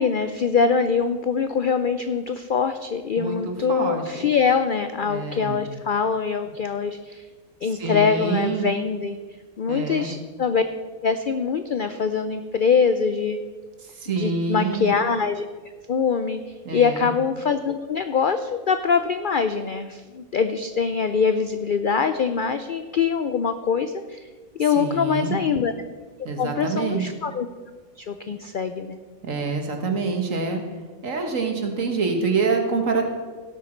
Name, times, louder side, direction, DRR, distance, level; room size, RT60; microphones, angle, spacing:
voice 1, 0.0-7.2 7.6-9.2 9.6-10.6 11.0-13.4 14.1-15.5 15.9-16.4 16.7-24.2 24.6-25.7 26.4-27.5 28.0-29.0, left 6 dB, 65° left, 10 dB, 0.5 m, -23 dB
voice 2, 3.2-4.3 5.0-5.7 7.7-8.7 9.7-10.1 14.0-14.9 16.7-17.1 24.8-25.4 26.3-27.1 29.2-30.6 31.0-33.0, right 4 dB, 65° right, 4 dB, 1.9 m, -26 dB
17.0 x 8.3 x 4.4 m, 1.4 s
omnidirectional pair, 1.5 m